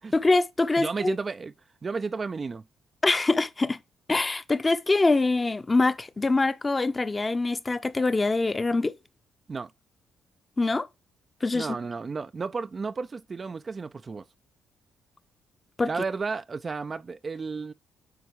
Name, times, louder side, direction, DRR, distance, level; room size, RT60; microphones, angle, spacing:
voice 1, 0.1-1.1 3.0-3.8 4.1-8.9 10.6-10.9 11.4-11.7 15.8-15.9, left 3 dB, 25° left, 0.7 m, -24 dB
voice 2, 0.8-1.5 1.8-2.6 9.5-9.7 11.5-14.2 15.8-17.7, right 4 dB, 35° right, 0.4 m, -32 dB
9.5 x 4.1 x 4.7 m
cardioid pair, 90°, 0 cm